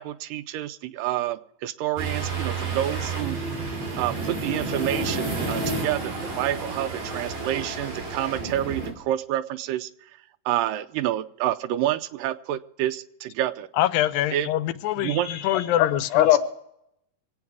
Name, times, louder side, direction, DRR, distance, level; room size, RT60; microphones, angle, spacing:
voice 1, 0.0-3.4 4.0-9.9 10.5-13.7 14.3-14.5 15.0-15.3, right 13 dB, 80° right, 2.3 m, -28 dB
sound 1, 2.0-8.9, right 3 dB, 55° right, 4.9 m, -30 dB
voice 2, 13.8-16.3, left 13 dB, 90° left, 2.4 m, -24 dB
voice 3, 15.1-16.4, left 12 dB, 70° left, 2.6 m, -22 dB
24.5 x 8.8 x 4.8 m
omnidirectional pair, 3.9 m